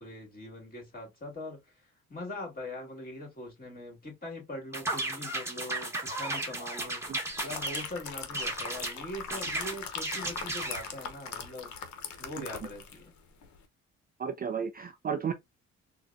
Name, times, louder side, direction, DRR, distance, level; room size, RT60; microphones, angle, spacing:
voice 1, 0.0-11.7 12.2-13.1, left 1 dB, 30° left, 2.1 m, -42 dB
sound 1, 4.7-7.9 8.3-9.0 9.3-10.9, right 2 dB, 10° right, 1.1 m, -34 dB
sound 2, 7.0-13.1 13.4-13.6, left 6 dB, 70° left, 0.8 m, -41 dB
voice 2, 14.2-15.3, right 7 dB, 30° right, 0.4 m, -33 dB
3.8 x 2.2 x 2.4 m
cardioid pair, 90°, 30 cm